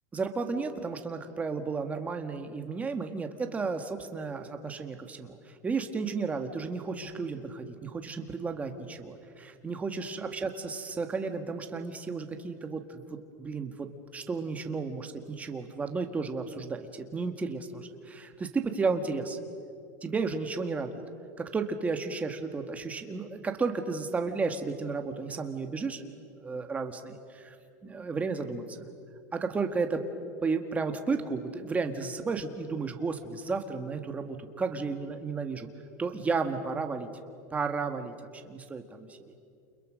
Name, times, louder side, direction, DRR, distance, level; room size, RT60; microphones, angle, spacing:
voice 1, 0.1-19.4 20.0-21.0 21.4-26.0 26.4-27.6 27.8-28.9 29.3-35.7 36.0-37.1 37.5-39.2, right 4 dB, 15° right, 6 dB, 1.7 m, -33 dB
30.0 x 29.0 x 6.4 m, 2.4 s
supercardioid pair, 150°, 10 cm